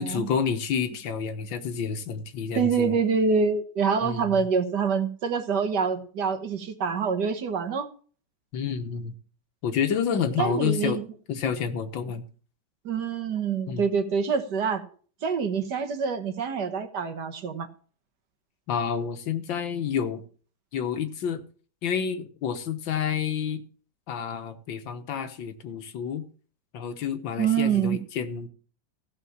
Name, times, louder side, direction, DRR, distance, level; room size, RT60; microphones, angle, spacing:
voice 1, 0.0-3.0 4.0-4.5 8.5-9.1 9.6-11.0 11.3-12.2 13.7-13.9 18.7-20.2 20.7-21.4 21.8-23.6 24.1-26.2 26.7-28.5, left 7 dB, 75° left, 1.9 m, -29 dB
voice 2, 2.5-7.9 10.4-11.1 12.9-14.8 15.2-17.7 27.4-28.0, right 6 dB, 60° right, 1.7 m, -26 dB
15.0 x 5.5 x 7.1 m
omnidirectional pair, 2.1 m